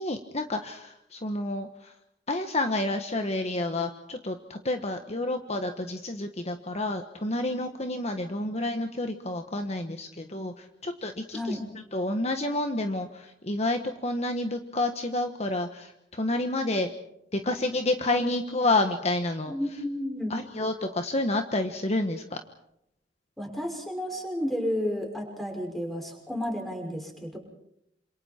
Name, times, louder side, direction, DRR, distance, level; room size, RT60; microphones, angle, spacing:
voice 1, 0.0-1.9 2.3-11.6 11.9-16.9 17.3-19.5 20.3-22.4, left 2 dB, 40° left, 6 dB, 1.4 m, -29 dB
voice 2, 11.3-11.6 19.5-20.3 23.4-27.4, equal, ahead, 1 dB, 6.0 m, -32 dB
28.0 x 27.0 x 4.5 m, 0.79 s
head